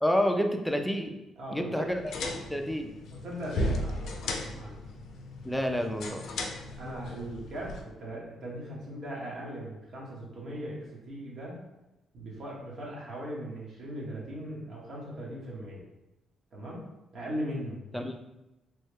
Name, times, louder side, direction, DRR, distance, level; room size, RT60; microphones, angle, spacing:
voice 1, 0.0-1.1 1.5-2.0 2.3-2.9 5.4-6.2 17.9-18.2, equal, 5° left, 4 dB, 0.4 m, -29 dB
voice 2, 1.4-1.9 2.6-2.7 3.2-4.8 6.8-11.6 12.1-15.8 16.5-16.8 17.1-17.8, right 1 dB, 60° right, -4 dB, 1.1 m, -39 dB
sound 1, 1.9-7.8, left 1 dB, 70° left, 0.4 m, -36 dB
3.2 x 2.1 x 3.2 m, 0.98 s
cardioid pair, 90°, 0 cm